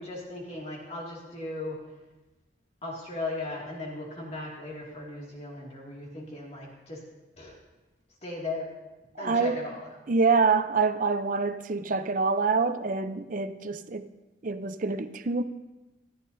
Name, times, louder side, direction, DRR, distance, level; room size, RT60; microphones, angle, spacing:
voice 1, 0.0-1.8 2.8-7.0 7.4-7.6 8.2-8.7 9.2-9.9, left 2 dB, 30° left, 2.1 m, -37 dB
voice 2, 9.2-9.6 10.1-14.1 14.4-15.4, right 4 dB, 45° right, 0.6 m, -26 dB
19.0 x 14.0 x 2.7 m
head